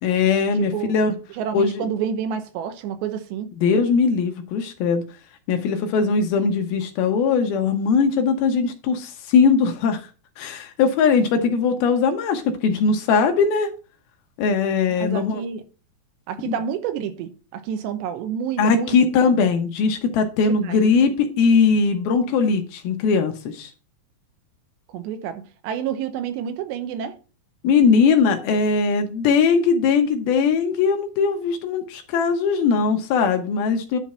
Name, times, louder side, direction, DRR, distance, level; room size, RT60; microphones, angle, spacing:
voice 1, 0.0-1.1 1.5-1.9 3.6-5.0 5.5-10.1 10.4-13.7 14.4-15.4 16.4-16.5 18.6-23.7 27.6-34.0, left 5 dB, 75° left, 2.5 m, -20 dB
voice 2, 0.6-1.0 1.3-3.5 15.0-15.6 16.3-19.0 20.5-20.8 24.9-27.2, right 8 dB, 85° right, 3.1 m, -29 dB
10.5 x 4.5 x 5.5 m
omnidirectional pair, 4.9 m